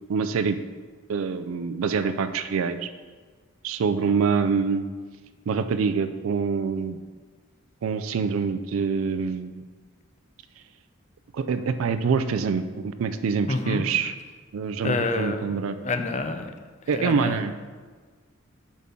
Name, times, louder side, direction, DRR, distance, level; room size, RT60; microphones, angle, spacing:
voice 1, 0.1-0.6 1.1-2.9 3.6-4.9 5.5-7.0 7.8-9.6 11.3-14.1 14.5-15.8 16.9-17.5, right 5 dB, 75° right, 10 dB, 0.4 m, -25 dB
voice 2, 13.5-13.8 14.8-15.5 15.8-16.5 16.9-17.4, left 3 dB, 35° left, 7 dB, 0.5 m, -27 dB
7.3 x 3.7 x 5.7 m, 1.5 s
head